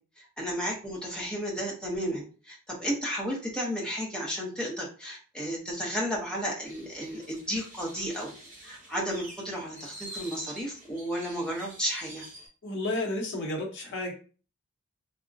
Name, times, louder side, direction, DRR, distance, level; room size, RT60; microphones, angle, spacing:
voice 1, 0.2-8.4 8.6-12.2, equal, 5° left, -3 dB, 0.7 m, -33 dB
sound 1, 6.6-12.5, right 1 dB, 40° right, 1.0 m, -47 dB
voice 2, 12.6-14.1, left 2 dB, 55° left, 0 dB, 0.7 m, -31 dB
3.5 x 2.0 x 2.5 m, 0.37 s
head